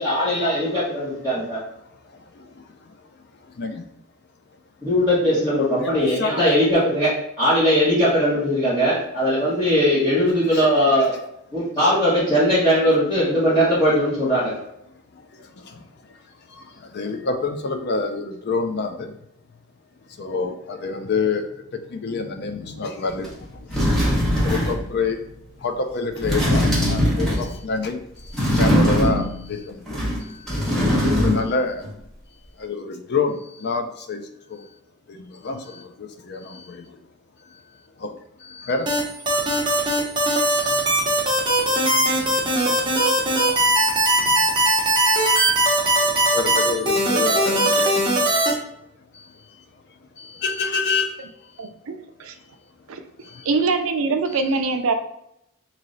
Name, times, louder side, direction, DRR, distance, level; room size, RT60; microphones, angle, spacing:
voice 1, 0.0-1.6 4.8-7.1 7.4-11.1 11.5-14.5, equal, 20° left, -12 dB, 1.3 m, -19 dB
voice 2, 5.8-6.6 10.5-10.7 15.1-15.8 16.5-19.1 20.2-25.2 25.6-30.7 31.1-31.8 32.6-34.2 34.5-34.7 35.1-36.9 38.0-38.1 38.4-38.9 39.3-39.8 40.4-44.9 45.4-45.5 45.8-48.5 49.1-49.3 50.2-51.2 53.2-53.5, left 4 dB, 50° left, 6 dB, 0.5 m, -29 dB
sound 1, 23.2-23.3 23.7-24.9 26.1-27.6 28.3-29.4 29.9-31.6 31.8-31.9, equal, ahead, 1.0 m, -20 dB
sound 2, 38.9-48.5, right 1 dB, 20° right, 0.9 m, -19 dB
voice 3, 51.6-52.3 52.9-53.0 53.4-54.9, right 4 dB, 70° right, 7 dB, 0.5 m, -23 dB
3.1 x 2.8 x 3.9 m, 0.77 s
head